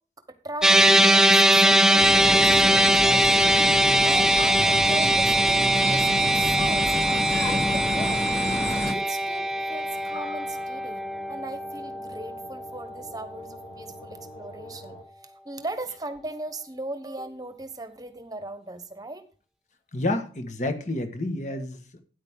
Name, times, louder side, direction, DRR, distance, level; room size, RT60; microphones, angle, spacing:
voice 1, 0.3-3.6 4.0-8.3 8.7-15.0 15.2-19.2 21.5-21.6, right 2 dB, 20° right, 9 dB, 1.1 m, -38 dB
sound 1, 0.6-13.1, right 1 dB, 5° right, 0.5 m, -21 dB
sound 2, 1.5-15.0, equal, 85° left, 5.3 m, -48 dB
sound 3, 2.0-8.9, left 1 dB, 15° left, 1.3 m, -30 dB
voice 2, 19.9-22.0, left 2 dB, 40° left, 6 dB, 1.7 m, -29 dB
13.0 x 9.7 x 3.8 m, 0.39 s
head